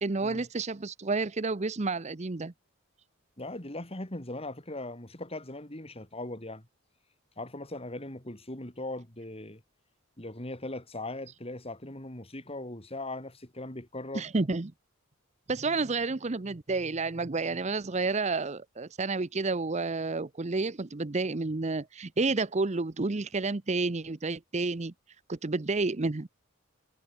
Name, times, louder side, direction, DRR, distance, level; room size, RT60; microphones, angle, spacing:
voice 1, 0.0-2.5 14.1-14.7 15.5-24.9 25.3-26.3, right 3 dB, 30° right, 0.7 m, -30 dB
voice 2, 3.4-6.7 7.4-9.6 10.2-14.3, left 2 dB, 25° left, 3.0 m, -39 dB
head